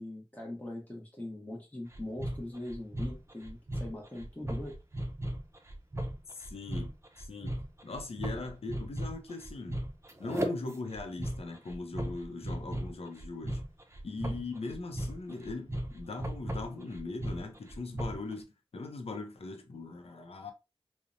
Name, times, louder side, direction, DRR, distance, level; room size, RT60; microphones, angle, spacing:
voice 1, 0.0-4.8, left 1 dB, 15° left, 0.7 m, -41 dB
sound 1, 1.9-18.3, right 1 dB, 30° right, 0.5 m, -37 dB
voice 2, 6.3-6.9 7.2-9.8 10.2-13.6 14.0-20.5, left 3 dB, 80° left, 0.5 m, -40 dB
2.7 x 2.0 x 2.5 m
wide cardioid pair, 50°, 10 cm